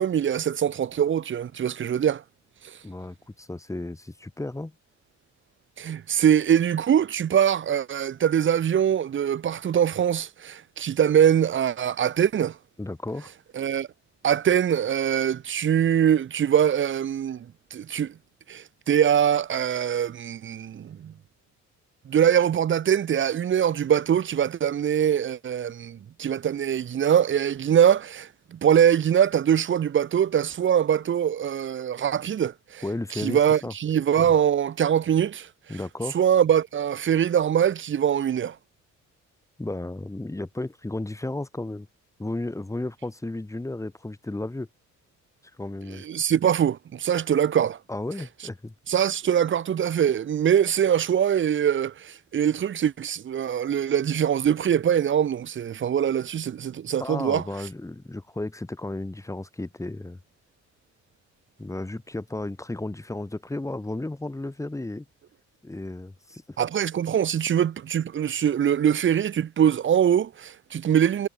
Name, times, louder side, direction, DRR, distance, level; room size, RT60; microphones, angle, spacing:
voice 1, 0.0-2.2 5.8-12.6 13.5-13.9 14.2-17.5 17.7-18.1 18.5-21.1 22.1-32.8 33.1-35.5 36.1-38.6 45.9-47.8 48.9-57.4 66.6-71.3, right 9 dB, 40° right, 0.7 m, -23 dB
voice 2, 2.8-4.7 12.8-13.3 32.8-33.7 34.2-34.3 35.7-36.2 39.6-41.9 42.2-44.7 45.6-46.0 47.9-48.7 57.0-60.2 61.6-65.0 65.6-66.6, left 2 dB, 10° left, 1.4 m, -33 dB
cardioid pair, 90°, 30 cm